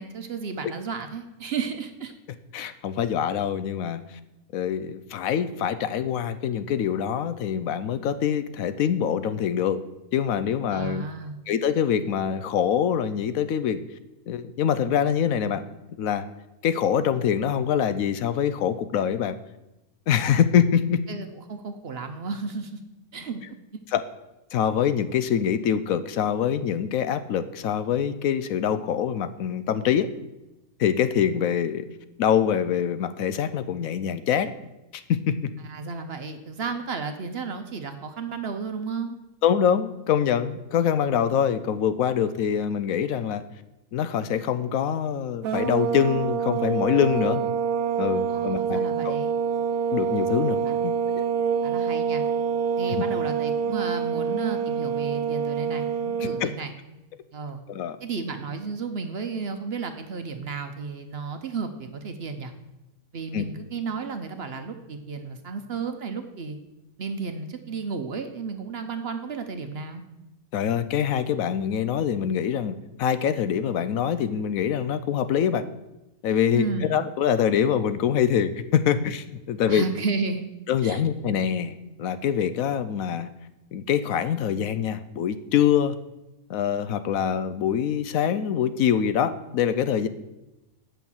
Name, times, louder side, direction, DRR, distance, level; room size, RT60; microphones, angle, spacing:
voice 1, 0.0-2.1 10.7-11.3 21.1-22.7 23.1-23.4 23.7-23.8 35.6-39.2 48.3-49.3 50.7-50.9 51.6-52.2 52.8-56.7 57.3-57.6 58.0-62.5 63.1-66.6 67.0-70.0 76.5-77.0 79.7-80.5 80.8-81.0, right 5 dB, 55° right, 7 dB, 0.9 m, -33 dB
voice 2, 2.5-4.0 4.5-9.8 10.1-11.1 11.5-13.8 14.3-15.6 16.0-16.3 16.6-19.4 20.1-21.0 23.9-24.0 24.5-30.1 30.8-31.9 32.2-34.5 34.9-35.5 39.4-43.4 43.9-47.4 48.0-49.1 49.9-51.2 52.9-53.0 56.4-56.5 57.7-58.0 63.3-63.4 70.5-75.7 76.2-79.9 80.7-83.3 83.7-86.0 86.5-90.1, left 8 dB, 75° left, 12 dB, 1.0 m, -24 dB
sound 1, 45.4-56.5, right 7 dB, 75° right, 1.1 m, -26 dB
8.4 x 5.8 x 7.1 m, 0.96 s
omnidirectional pair, 1.5 m